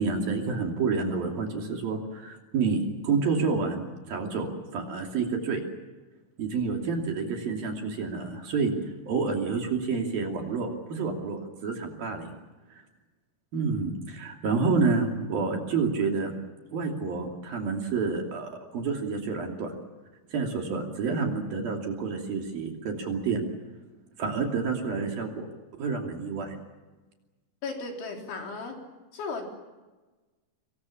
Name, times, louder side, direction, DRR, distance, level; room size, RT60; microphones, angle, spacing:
voice 1, 0.0-5.6 6.4-8.7 9.1-12.4 12.7-12.8 13.5-16.3 16.7-19.7 20.3-23.4 24.2-25.5 25.8-26.6, right 4 dB, 50° right, 2 dB, 4.2 m, -29 dB
voice 2, 27.6-28.8 29.1-29.5, left 4 dB, 70° left, 1 dB, 6.1 m, -35 dB
26.0 x 24.0 x 7.3 m, 1.2 s
omnidirectional pair, 5.6 m